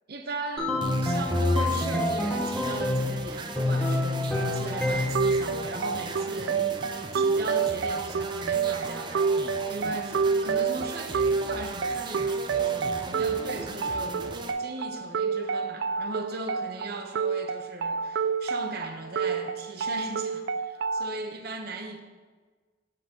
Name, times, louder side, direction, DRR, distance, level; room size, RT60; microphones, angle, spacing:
voice 1, 0.1-0.7 1.0-14.3 14.6-22.0, right 2 dB, 55° right, 5 dB, 0.8 m, -38 dB
sound 1, 0.6-3.2 3.6-5.4, left 1 dB, 5° left, 1.1 m, -27 dB
sound 2, 0.8-14.5, right 3 dB, 25° right, 0.5 m, -38 dB
sound 3, 5.2-21.1, right 5 dB, 80° right, 0.3 m, -29 dB
7.6 x 7.5 x 3.7 m, 1.4 s
head